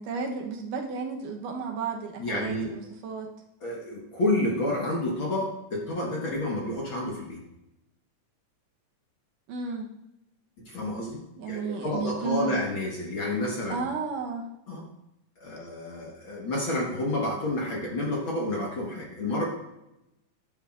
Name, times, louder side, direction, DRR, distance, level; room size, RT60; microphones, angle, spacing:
voice 1, 0.0-3.3 9.5-9.9 11.4-12.6 13.7-14.5, right 4 dB, 80° right, 1 dB, 2.6 m, -33 dB
voice 2, 2.2-2.7 3.6-7.4 10.7-13.8 14.7-14.8 15.4-19.4, left 1 dB, 50° left, -3 dB, 1.8 m, -30 dB
10.0 x 10.0 x 2.5 m, 0.89 s
omnidirectional pair, 3.7 m